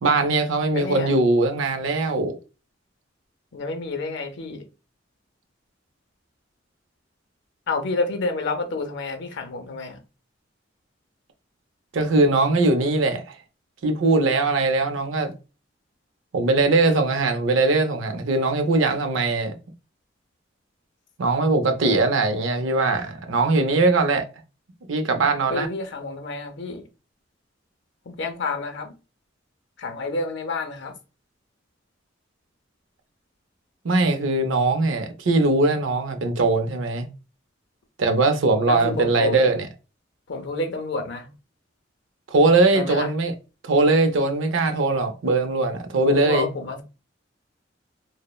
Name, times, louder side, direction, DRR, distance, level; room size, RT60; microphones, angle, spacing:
voice 1, 0.0-2.4 11.9-13.2 13.8-15.3 16.3-19.5 21.2-24.2 24.9-25.7 33.8-37.1 38.0-39.7 42.3-43.3 43.6-46.5, right 3 dB, 75° right, 0.5 m, -21 dB
voice 2, 0.7-1.1 3.5-4.6 7.7-10.0 25.5-26.8 28.1-28.9 29.8-30.9 38.7-39.4 40.3-41.3 42.7-43.1 46.1-46.8, left 3 dB, 65° left, 0.6 m, -29 dB
3.0 x 2.0 x 2.2 m
head